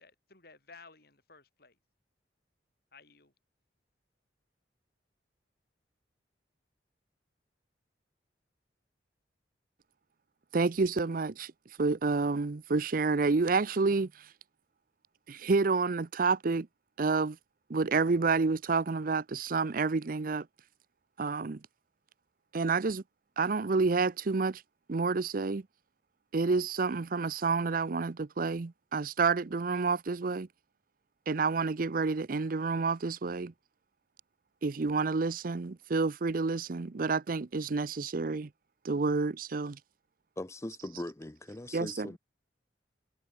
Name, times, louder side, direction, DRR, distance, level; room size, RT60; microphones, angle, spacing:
voice 1, 0.0-1.8 2.9-3.3, left 4 dB, 60° left, 6.7 m, -56 dB
voice 2, 10.5-11.5 11.8-14.3 15.3-16.7 17.0-17.4 17.7-20.5 21.2-21.6 22.5-23.0 23.4-24.6 24.9-25.7 26.3-30.5 31.3-33.5 34.6-38.5 38.8-39.8 41.7-42.1, right 4 dB, 50° right, 0.6 m, -29 dB
voice 3, 40.4-42.2, left 1 dB, 15° left, 0.6 m, -40 dB
head